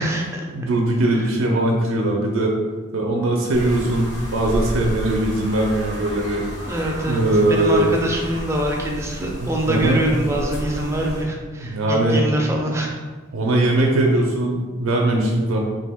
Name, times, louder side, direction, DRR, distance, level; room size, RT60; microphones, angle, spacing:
voice 1, 0.0-0.5 1.1-1.3 6.6-12.9, right 1 dB, 15° right, 0 dB, 0.4 m, -24 dB
voice 2, 0.5-2.6 2.9-6.5 7.1-8.0 9.4-10.0 11.6-12.3 13.3-15.6, right 1 dB, 80° right, 0 dB, 0.4 m, -20 dB
sound 1, 3.5-11.2, equal, 70° left, 1.1 m, -32 dB
2.8 x 2.5 x 3.4 m, 1.4 s
head